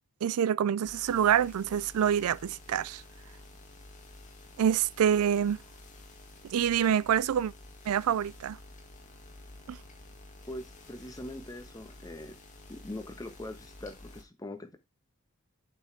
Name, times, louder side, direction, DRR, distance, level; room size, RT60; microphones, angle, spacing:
voice 1, 0.2-3.0 4.6-5.6 6.5-7.5 7.9-8.6 9.7-9.8, right 9 dB, 80° right, 0.4 m, -26 dB
sound 1, 0.8-14.2, left 2 dB, 35° left, 2.0 m, -51 dB
voice 2, 10.5-12.3 12.7-14.8, left 1 dB, 15° left, 1.2 m, -42 dB
8.0 x 6.0 x 3.4 m
head